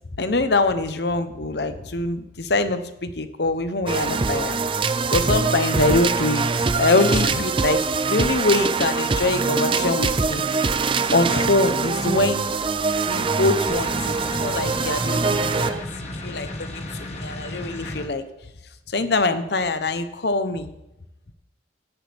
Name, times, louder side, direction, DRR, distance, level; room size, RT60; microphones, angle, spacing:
voice 1, 0.2-4.6 5.1-10.4 11.1-12.5 13.0-15.8 16.2-18.2 18.9-20.7, left 2 dB, 65° left, 10 dB, 0.9 m, -24 dB
sound 1, 3.9-15.8, right 4 dB, 30° right, 0.5 m, -23 dB
sound 2, 13.7-18.1, left 1 dB, 35° left, 1.6 m, -34 dB
16.0 x 10.5 x 3.5 m, 0.90 s
head